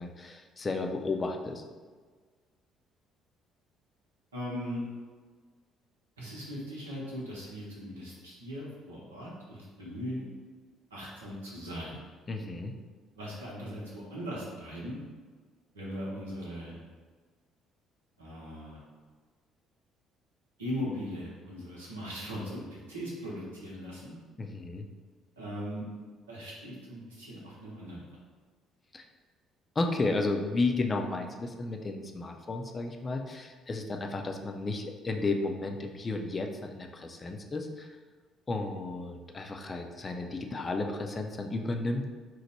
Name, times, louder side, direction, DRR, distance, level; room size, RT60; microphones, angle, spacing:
voice 1, 0.0-1.6 12.3-12.8 24.4-24.9 28.9-29.0 29.8-37.9 38.5-42.1, left 3 dB, 30° left, 3 dB, 0.4 m, -33 dB
voice 2, 4.3-4.8 6.2-10.3 10.9-12.0 13.1-15.0 15.7-16.8 18.2-18.8 20.6-24.2 25.4-25.8 26.3-28.2, equal, 85° right, -5 dB, 0.8 m, -39 dB
3.0 x 2.1 x 4.1 m, 1.5 s
hypercardioid pair, 50°, 0 cm